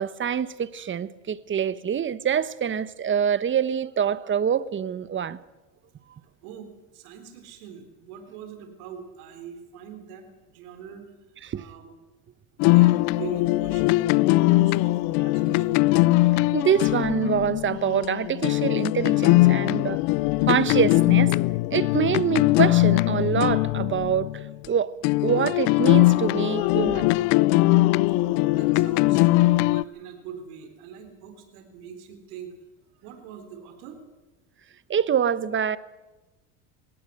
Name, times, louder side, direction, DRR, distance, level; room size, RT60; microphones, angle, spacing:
voice 1, 0.0-5.4 11.4-11.6 16.5-20.0 20.5-21.3 21.7-24.9 25.2-27.1 34.9-35.8, right 8 dB, 25° right, 1.0 m, -25 dB
voice 2, 6.4-11.1 11.5-11.9 12.7-15.9 26.2-26.4 28.2-32.5 32.9-34.0, right 7 dB, 80° right, 4.0 m, -42 dB
sound 1, 12.6-24.7 25.0-29.8, left 20 dB, 70° left, 0.6 m, -21 dB
20.5 x 17.5 x 8.0 m
supercardioid pair, 100°, 44 cm